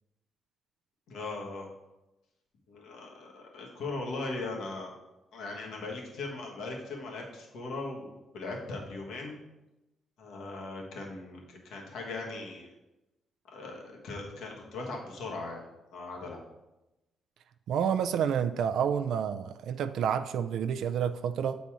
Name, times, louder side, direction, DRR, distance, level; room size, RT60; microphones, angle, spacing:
voice 1, 1.1-1.7 2.7-4.9 5.3-9.3 10.2-12.7 13.5-15.7 15.9-16.4, left 3 dB, 85° left, -1 dB, 1.5 m, -39 dB
voice 2, 17.7-21.6, right 8 dB, 80° right, 9 dB, 0.3 m, -29 dB
7.4 x 4.0 x 4.8 m, 1.0 s
cardioid pair, 95°, 0 cm